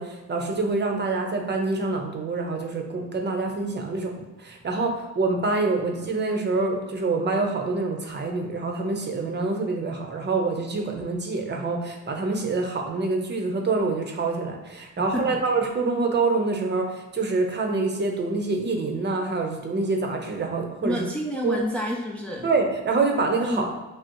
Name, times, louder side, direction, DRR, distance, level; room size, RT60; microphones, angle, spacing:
voice 1, 0.0-4.1 4.4-21.1 21.4-21.6 22.4-23.7, right 3 dB, 35° right, 2 dB, 0.7 m, -26 dB
voice 2, 15.0-15.4 20.8-22.5 23.4-23.7, left 1 dB, 5° left, -1 dB, 0.5 m, -29 dB
6.0 x 2.0 x 3.0 m, 1.1 s
cardioid pair, 90°, 30 cm